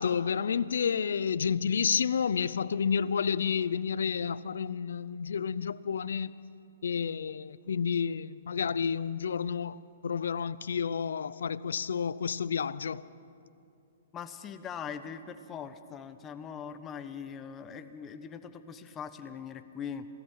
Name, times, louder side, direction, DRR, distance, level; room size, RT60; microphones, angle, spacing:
voice 1, 0.0-6.3 6.8-9.8 10.0-13.0, left 6 dB, 80° left, 0.5 m, -30 dB
voice 2, 14.1-20.1, left 7 dB, 20° left, 1.1 m, -41 dB
27.0 x 16.5 x 5.7 m
hypercardioid pair, 140°, 0 cm